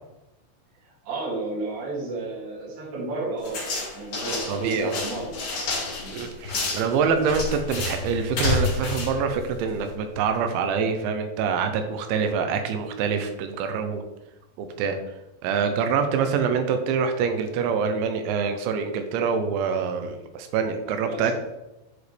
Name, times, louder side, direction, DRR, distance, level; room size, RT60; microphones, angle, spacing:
voice 1, 0.8-5.4 6.0-6.2 21.0-21.3, right 2 dB, 55° right, -4 dB, 3.8 m, -32 dB
sound 1, 3.4-10.0, left 3 dB, 50° left, 3.3 m, -29 dB
voice 2, 4.5-5.0 6.1-14.0 14.6-15.0 15.4-21.3, right 6 dB, 85° right, 6 dB, 3.0 m, -25 dB
11.0 x 5.0 x 3.3 m, 0.96 s
omnidirectional pair, 5.4 m